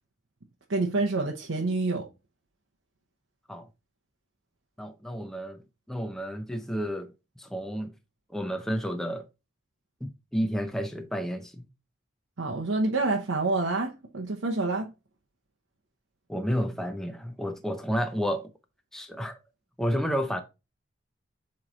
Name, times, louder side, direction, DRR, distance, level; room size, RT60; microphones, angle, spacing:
voice 1, 0.7-2.1 12.4-14.9, right 3 dB, 85° right, 0.9 m, -27 dB
voice 2, 4.8-5.6 5.9-7.1 7.4-7.9 8.3-9.2 10.0-11.7 16.3-18.5 18.9-19.3 19.8-20.4, equal, ahead, 0.5 m, -31 dB
7.6 x 3.2 x 3.8 m
head